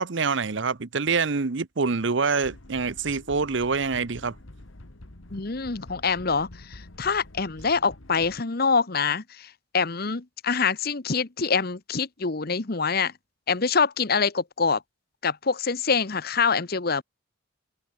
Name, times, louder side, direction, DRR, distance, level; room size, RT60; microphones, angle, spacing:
voice 1, 0.0-4.3, right 4 dB, 65° right, 0.9 m, -26 dB
sound 1, 2.4-8.4, left 1 dB, 85° left, 2.0 m, -47 dB
voice 2, 5.3-13.1 13.5-14.8 15.2-17.0, left 5 dB, 50° left, 1.1 m, -25 dB
open air
head